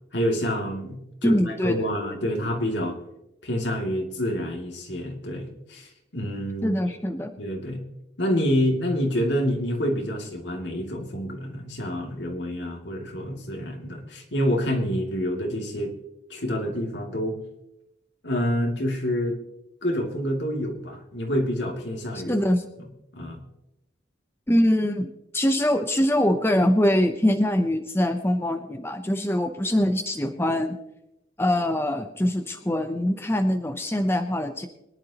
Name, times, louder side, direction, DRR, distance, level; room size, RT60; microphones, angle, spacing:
voice 1, 0.1-3.0 3.4-6.7 7.4-7.8 8.2-15.9 16.3-17.4 18.2-19.4 19.8-22.4 22.8-22.9 23.1-23.4, equal, 75° left, 1 dB, 2.6 m, -27 dB
voice 2, 1.2-1.8 6.6-7.3 22.1-22.7 24.5-30.8 31.4-34.7, left 1 dB, 15° left, 5 dB, 0.7 m, -23 dB
24.0 x 11.0 x 3.0 m, 0.90 s
head